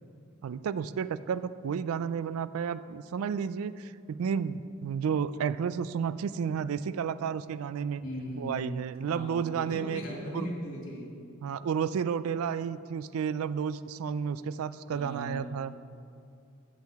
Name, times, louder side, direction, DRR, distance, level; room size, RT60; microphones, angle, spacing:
voice 1, 0.4-8.0 8.4-10.0 10.3-10.5 11.4-15.7, right 7 dB, 70° right, 16 dB, 0.3 m, -32 dB
voice 2, 8.0-8.5 9.1-11.1 14.9-15.5, equal, 65° left, -3 dB, 2.6 m, -38 dB
12.5 x 8.2 x 3.5 m, 2.4 s
head